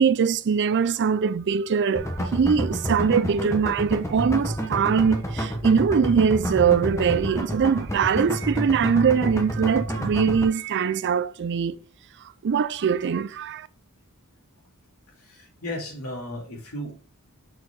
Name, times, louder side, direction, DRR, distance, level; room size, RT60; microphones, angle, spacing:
voice 1, 0.0-11.8 12.4-13.7, right 6 dB, 55° right, 0.4 m, -22 dB
sound 1, 1.9-10.4, equal, 15° left, 1.1 m, -29 dB
voice 2, 15.2-16.9, left 1 dB, 80° left, 2.9 m, -35 dB
6.3 x 4.6 x 4.7 m
head